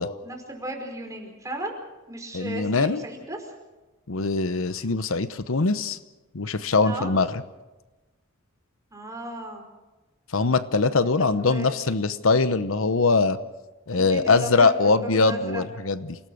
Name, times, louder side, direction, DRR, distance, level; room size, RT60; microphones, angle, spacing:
voice 1, 0.2-1.7 2.1-3.5 6.8-7.1 8.9-9.6 11.0-11.8 13.9-14.7 15.0-15.6, right 1 dB, 15° right, 2 dB, 5.0 m, -35 dB
voice 2, 2.3-3.0 4.1-6.0 6.3-7.4 10.3-13.4 13.9-16.2, left 3 dB, 70° left, 13 dB, 0.9 m, -22 dB
28.5 x 18.5 x 6.4 m, 1.1 s
head